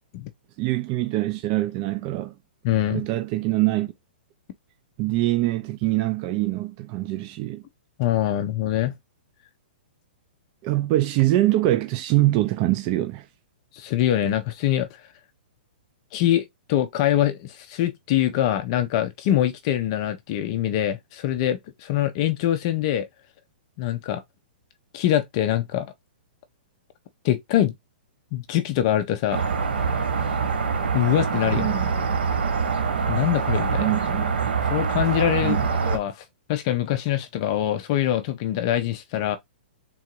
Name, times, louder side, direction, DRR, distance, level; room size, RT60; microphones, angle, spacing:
voice 1, 0.6-2.3 2.9-3.9 5.0-7.6 10.6-13.3 31.6-31.9 33.8-34.3 35.4-35.7, right 16 dB, 25° right, 0.4 m, -24 dB
voice 2, 2.6-3.0 8.0-8.9 13.7-14.9 16.1-23.1 23.8-24.2 24.9-25.9 27.2-27.7 28.3-29.5 30.9-31.7 33.1-33.9 34.7-35.6 35.8-36.2 36.5-39.4, left 12 dB, 30° left, 0.6 m, -24 dB
sound 1, 29.3-36.0, right 5 dB, 85° right, 1.2 m, -24 dB
3.7 x 2.6 x 4.4 m
hypercardioid pair, 170°, 5 cm